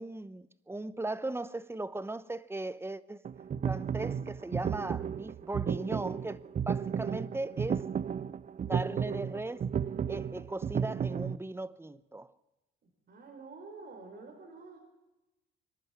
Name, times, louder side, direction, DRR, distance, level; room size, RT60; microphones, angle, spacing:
voice 1, 0.0-3.2 3.6-6.4 6.7-7.8 8.7-9.7 10.1-12.3, right 2 dB, 10° right, 0.9 m, -38 dB
sound 1, 3.2-11.4, right 7 dB, 40° right, 0.6 m, -33 dB
voice 2, 13.1-14.8, right 3 dB, 55° right, 4.4 m, -48 dB
25.0 x 11.5 x 9.0 m
cardioid pair, 90°, 20 cm